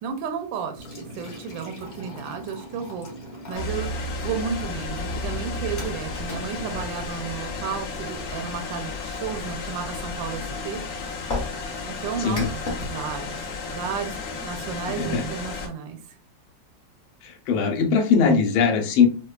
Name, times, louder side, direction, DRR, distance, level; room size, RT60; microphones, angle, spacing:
voice 1, 0.0-3.1 3.5-3.9 4.2-10.8 11.8-16.2, right 6 dB, 80° right, 6 dB, 1.3 m, -33 dB
sound 1, 0.8-8.5 11.3-12.9, left 2 dB, 45° left, 0.6 m, -37 dB
sound 2, 3.5-15.7, left 3 dB, 60° left, 1.0 m, -33 dB
voice 2, 17.2-19.1, left 6 dB, 80° left, 4 dB, 1.5 m, -20 dB
5.1 x 2.1 x 2.3 m, 0.38 s
omnidirectional pair, 2.1 m